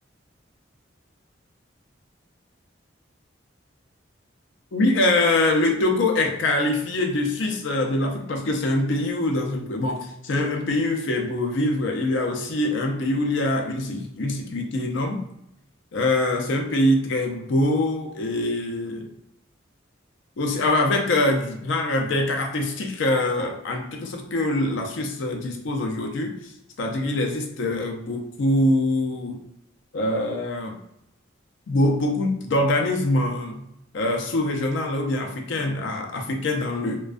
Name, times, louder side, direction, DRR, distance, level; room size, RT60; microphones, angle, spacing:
voice 1, 4.7-15.2 15.9-19.1 20.4-26.5 26.8-29.4 29.9-30.8 31.7-33.6 33.9-37.0, left 1 dB, 75° left, 3 dB, 0.4 m, -24 dB
2.2 x 2.2 x 2.4 m, 0.79 s
head